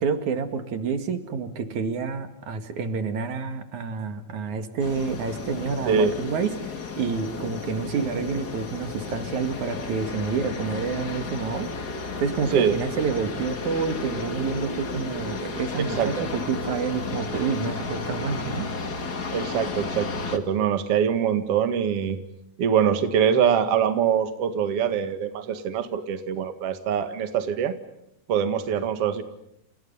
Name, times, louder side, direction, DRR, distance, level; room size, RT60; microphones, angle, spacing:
voice 1, 0.0-6.5 7.0-11.7 12.2-18.7, right 5 dB, 75° right, 9 dB, 3.3 m, -28 dB
sound 1, 4.8-20.4, left 4 dB, 35° left, 2.4 m, -33 dB
voice 2, 15.8-16.2 19.3-22.2 22.6-27.7 28.3-29.2, right 8 dB, 55° right, 9 dB, 2.7 m, -24 dB
30.0 x 29.5 x 5.5 m, 0.78 s
omnidirectional pair, 3.5 m